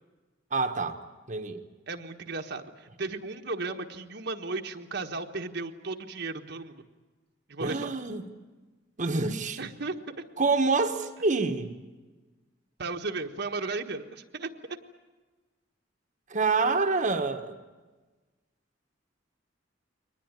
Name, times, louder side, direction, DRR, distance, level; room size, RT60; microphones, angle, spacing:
voice 1, 0.5-1.0 1.3-1.6 7.6-8.2 9.0-9.6 10.4-11.7 16.3-17.6, right 3 dB, 40° right, 5 dB, 1.3 m, -27 dB
voice 2, 1.9-6.8 7.5-7.9 9.6-10.2 12.8-14.5, right 3 dB, 65° right, 4 dB, 1.4 m, -35 dB
23.0 x 19.5 x 9.6 m, 1.3 s
head